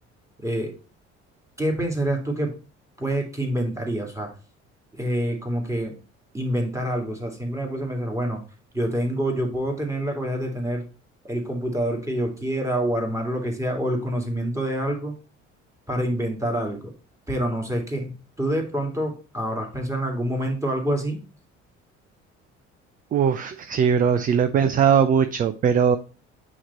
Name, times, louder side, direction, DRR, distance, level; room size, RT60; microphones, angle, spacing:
voice 1, 0.4-0.7 1.6-2.5 3.0-4.3 4.9-5.9 6.3-8.4 8.7-10.8 11.2-15.1 15.9-16.9 17.3-21.2, right 1 dB, 10° right, 2 dB, 2.2 m, -26 dB
voice 2, 23.1-26.0, right 7 dB, 25° right, 10 dB, 0.4 m, -20 dB
8.5 x 3.0 x 4.2 m, 0.35 s
figure-of-eight pair, 55°, 37 cm